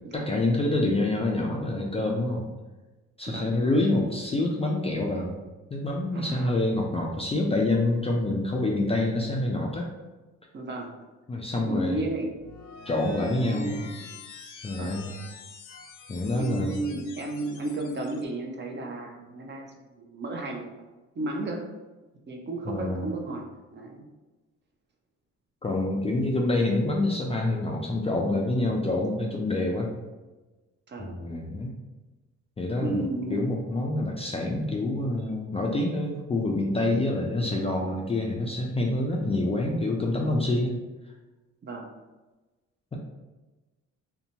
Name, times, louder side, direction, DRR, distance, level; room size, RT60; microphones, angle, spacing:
voice 1, 0.1-2.5 3.2-5.3 5.7-9.9 11.3-12.1 12.9-13.8 14.6-15.1 16.1-16.8 22.7-23.1 25.6-29.9 31.0-31.7 32.6-33.0 33.3-40.7, left 2 dB, 20° left, -1 dB, 0.3 m, -27 dB
voice 2, 3.3-3.7 6.1-6.5 10.5-10.9 11.7-12.3 13.5-14.1 14.8-15.0 16.3-20.7 21.2-21.6 22.3-23.4 23.7-24.0 30.9-31.1 32.8-33.4 41.6-41.9, right 2 dB, 35° right, 1 dB, 0.5 m, -33 dB
sound 1, 12.3-18.2, left 5 dB, 90° left, 0.5 m, -46 dB
2.7 x 2.2 x 2.7 m, 1.2 s
cardioid pair, 90°, 30 cm